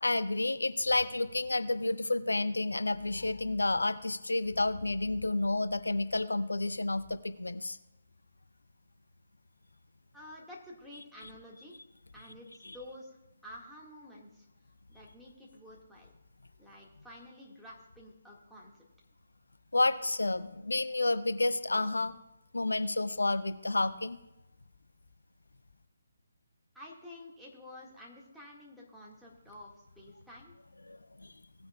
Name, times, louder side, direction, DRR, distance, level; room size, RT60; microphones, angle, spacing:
voice 1, 0.0-7.8 12.6-12.8 19.7-22.2 22.5-24.2 30.9-31.3, left 2 dB, 75° left, 13 dB, 0.5 m, -30 dB
voice 2, 10.1-11.8 12.1-13.2 13.4-14.5 14.9-16.1 16.6-18.8 26.7-29.7 30.0-30.5, left 1 dB, ahead, -5 dB, 1.8 m, -50 dB
18.0 x 9.3 x 2.3 m, 0.93 s
figure-of-eight pair, 145°, 0 cm